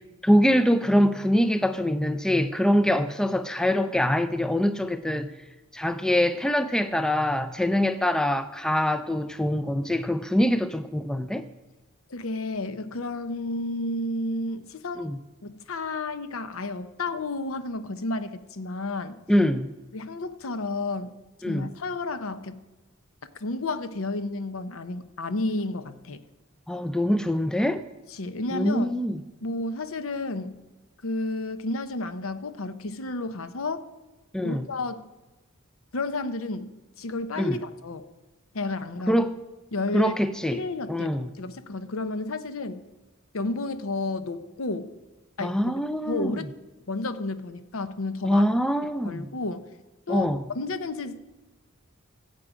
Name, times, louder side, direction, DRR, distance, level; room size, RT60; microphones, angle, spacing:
voice 1, 0.2-5.3 5.7-11.4 15.0-15.2 19.3-19.7 21.4-21.7 26.7-27.8 28.5-29.2 34.3-34.7 37.4-37.6 39.1-39.4 39.9-40.6 40.9-41.3 45.4-46.4 48.2-49.2 50.1-50.4, equal, 5° left, 0.4 m, -24 dB
voice 2, 12.1-15.1 15.4-19.2 19.9-21.1 21.5-22.6 23.4-26.2 28.1-28.9 29.4-30.6 31.0-33.9 34.4-35.1 35.9-38.0 38.5-39.2 39.7-40.2 40.5-42.8 43.3-44.9 45.4-45.6 46.1-46.5 46.9-48.4 49.0-49.7 50.1-50.3 50.5-51.2, left 2 dB, 70° left, 0.7 m, -31 dB
16.0 x 7.7 x 4.8 m
head